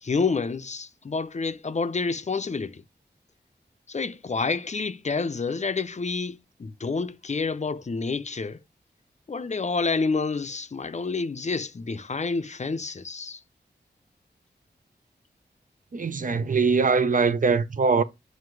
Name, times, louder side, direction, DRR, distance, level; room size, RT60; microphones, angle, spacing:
voice 1, 0.0-2.8 3.9-8.6 9.3-13.4, left 4 dB, 40° left, 0.5 m, -28 dB
voice 2, 15.9-18.0, right 4 dB, 50° right, 0.6 m, -22 dB
7.7 x 2.7 x 4.6 m
wide cardioid pair, 95°, 18 cm